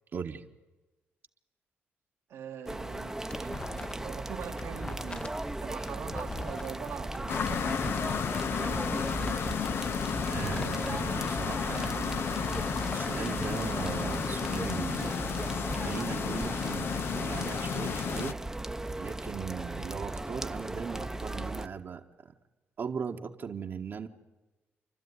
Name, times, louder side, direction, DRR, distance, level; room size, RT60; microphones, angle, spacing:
voice 1, 0.1-0.4 10.2-15.4 15.8-18.4 18.9-22.3 22.8-24.1, right 6 dB, 55° right, 3 dB, 1.4 m, -38 dB
voice 2, 2.3-7.8, right 8 dB, 85° right, 0 dB, 2.1 m, -43 dB
sound 1, 2.7-21.7, right 2 dB, 10° right, 0.9 m, -37 dB
sound 2, 3.3-4.2 4.4-8.0 8.4-10.8 11.1-13.1, left 2 dB, 25° left, 0.9 m, -42 dB
sound 3, 7.3-18.3, left 7 dB, 60° left, 0.6 m, -33 dB
29.0 x 12.5 x 9.7 m, 1.1 s
cardioid pair, 85°, 4 cm